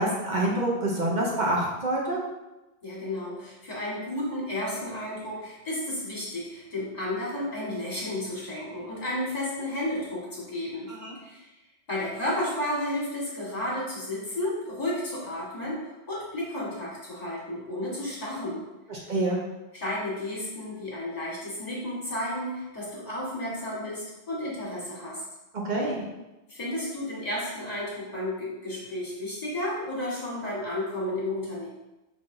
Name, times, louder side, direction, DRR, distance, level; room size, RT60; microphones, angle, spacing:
voice 1, 0.0-2.2 10.9-11.2 18.9-19.4 25.6-26.0, right 1 dB, 50° right, -2 dB, 0.9 m, -27 dB
voice 2, 2.8-10.9 11.2-11.5 11.9-15.8 16.1-18.6 19.7-25.2 26.5-31.7, left 1 dB, 40° left, -6 dB, 1.6 m, -32 dB
5.7 x 3.2 x 2.6 m, 1.0 s
omnidirectional pair, 1.1 m